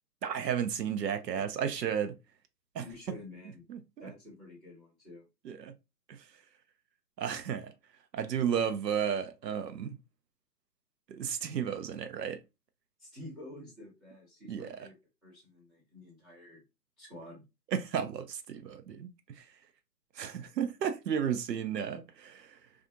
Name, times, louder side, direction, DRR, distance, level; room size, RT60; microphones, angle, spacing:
voice 1, 0.2-2.1 2.7-2.8 3.7-4.1 5.4-5.7 6.1-6.2 7.2-7.7 8.1-10.0 11.1-12.4 14.5-14.9 17.7-19.5 20.1-22.6, right 8 dB, 75° right, 0.7 m, -33 dB
voice 2, 2.8-3.6 4.0-5.2 13.0-14.9 15.2-16.6 17.0-17.4, left 2 dB, 15° right, 0.9 m, -49 dB
2.4 x 2.4 x 2.7 m
hypercardioid pair, 150°, 50 cm